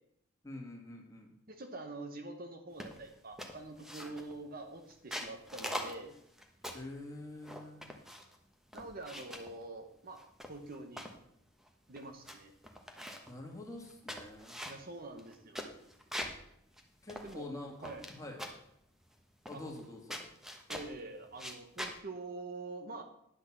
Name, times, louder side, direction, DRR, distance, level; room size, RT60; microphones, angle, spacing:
voice 1, 0.4-1.3 6.7-7.9 13.3-14.6 17.0-18.4 19.5-20.2, left 2 dB, 15° left, 0 dB, 2.1 m, -46 dB
voice 2, 1.5-6.1 8.7-10.2 10.5-11.0 11.9-12.5 14.6-15.8 17.2-17.5 17.8-18.0 19.5-19.6 20.7-23.0, right 2 dB, 45° right, 6 dB, 1.1 m, -45 dB
sound 1, 2.8-3.1 3.4-4.4 4.9-6.9 7.4-8.4 8.7-9.5 10.2-11.2 11.7-11.8 12.0-12.4 12.6-13.3 13.8-16.4 16.8-16.9 17.1-18.1 18.4-18.7 19.5-19.8 20.1-20.9 21.3-22.0, equal, ahead, 1.0 m, -43 dB
10.0 x 6.2 x 7.3 m, 0.74 s
head